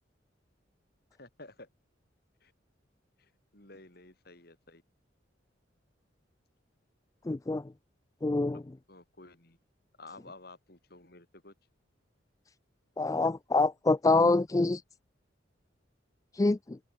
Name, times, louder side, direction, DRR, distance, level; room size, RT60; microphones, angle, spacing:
voice 1, 1.2-1.7 2.4-2.5 3.2-4.8 8.5-8.6 8.9-9.6 10.0-11.5, left 2 dB, 55° left, 4.6 m, -52 dB
voice 2, 7.3-7.6 8.2-8.6 13.0-14.8 16.3-16.8, left 3 dB, 20° left, 0.3 m, -26 dB
open air
head